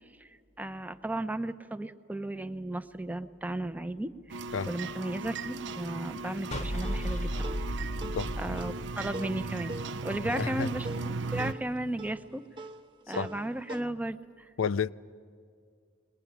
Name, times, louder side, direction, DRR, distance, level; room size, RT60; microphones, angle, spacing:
voice 1, 0.6-7.8 8.4-12.4 13.1-14.5, right 1 dB, 10° right, 0.6 m, -35 dB
sound 1, 4.3-11.5, right 3 dB, 60° right, 0.5 m, -37 dB
sound 2, 6.5-9.7, equal, 35° left, 0.9 m, -34 dB
sound 3, 6.8-13.8, right 2 dB, 25° right, 1.0 m, -43 dB
voice 2, 10.3-10.7 13.2-13.3 14.6-14.9, left 6 dB, 85° left, 0.5 m, -30 dB
21.5 x 20.5 x 9.4 m
head